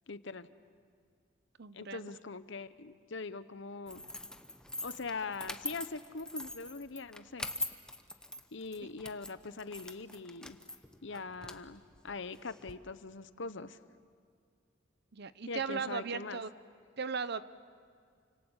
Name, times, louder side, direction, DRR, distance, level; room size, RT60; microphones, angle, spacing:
voice 1, 0.1-0.5 1.7-4.0 4.8-7.5 8.5-10.6 11.0-13.8 15.5-16.4, left 4 dB, 70° left, 13 dB, 0.9 m, -42 dB
voice 2, 1.6-2.1 15.1-16.5 17.0-17.4, right 5 dB, 60° right, 14 dB, 0.8 m, -37 dB
sound 1, 3.9-12.7, left 1 dB, 5° left, 1.0 m, -44 dB
29.5 x 26.0 x 7.3 m, 2.1 s
head